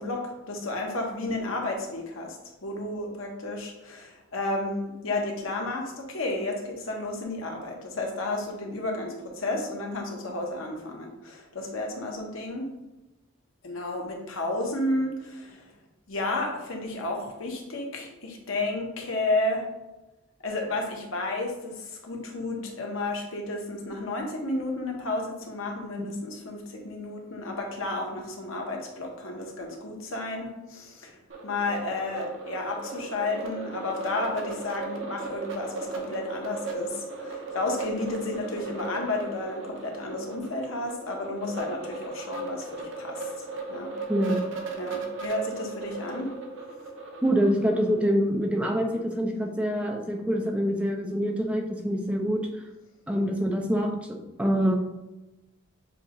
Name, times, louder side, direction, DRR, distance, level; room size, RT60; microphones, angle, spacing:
voice 1, 0.0-12.7 13.6-15.7 16.1-19.6 20.4-31.2 31.4-43.3 43.7-43.9 44.8-46.3, left 2 dB, 80° left, 1 dB, 1.0 m, -32 dB
sound 1, 31.3-48.0, right 4 dB, 65° right, 0.7 m, -37 dB
voice 2, 47.2-52.4 53.1-54.8, equal, 5° right, 1 dB, 0.4 m, -25 dB
6.9 x 2.4 x 3.0 m, 1.0 s
head